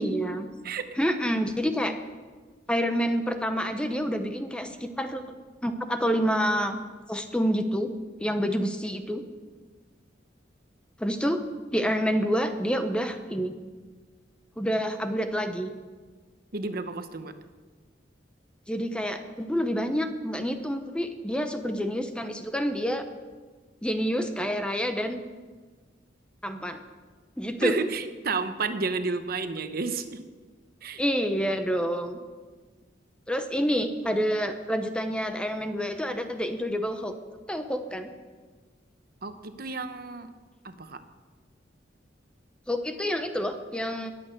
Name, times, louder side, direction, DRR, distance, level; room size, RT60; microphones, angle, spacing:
voice 1, 0.0-0.5 1.0-1.9 2.7-5.2 5.6-6.8 7.1-7.9 8.2-9.2 11.0-11.4 11.7-13.5 14.6-15.7 18.7-23.0 23.8-25.2 26.4-26.8 27.4-27.8 31.0-32.2 33.3-37.1 37.5-38.1 42.7-44.1, equal, 5° left, 7 dB, 0.8 m, -28 dB
voice 2, 16.5-17.3 27.6-30.2 30.8-31.0 39.2-40.3 40.6-41.0, right 4 dB, 50° right, 9 dB, 0.9 m, -31 dB
20.0 x 8.8 x 6.5 m, 1.4 s
head